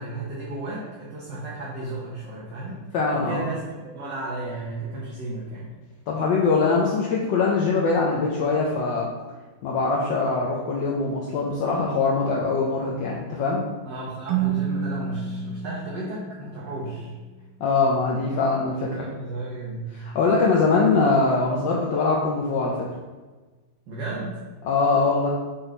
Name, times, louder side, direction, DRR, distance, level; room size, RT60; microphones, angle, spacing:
voice 1, 0.0-2.8 3.1-5.7 13.8-17.1 18.8-20.0 23.9-24.4, right 2 dB, 60° right, -6 dB, 1.5 m, -33 dB
voice 2, 2.9-3.4 6.1-9.1 9.6-13.6 17.6-18.9 19.9-22.8 24.6-25.3, left 4 dB, 70° left, -3 dB, 1.3 m, -22 dB
Keyboard (musical), 14.3-17.0, right 8 dB, 85° right, 1.7 m, -30 dB
6.1 x 4.0 x 3.9 m, 1.3 s
omnidirectional pair, 2.4 m